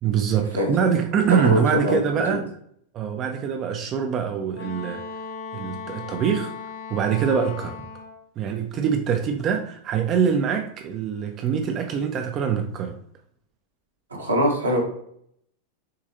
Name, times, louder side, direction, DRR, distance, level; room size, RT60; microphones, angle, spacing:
voice 1, 0.0-2.5 2.9-5.0 5.5-6.5 6.9-7.8 8.4-13.0, right 7 dB, 30° right, 0.4 m, -24 dB
voice 2, 1.4-2.0 2.3-2.4 14.1-14.8, equal, 75° right, 1.1 m, -22 dB
Wind instrument woodwind instrument, 4.5-8.2, left 5 dB, 60° left, 0.8 m, -37 dB
6.4 x 2.7 x 2.6 m
figure-of-eight pair, 90°, 0 cm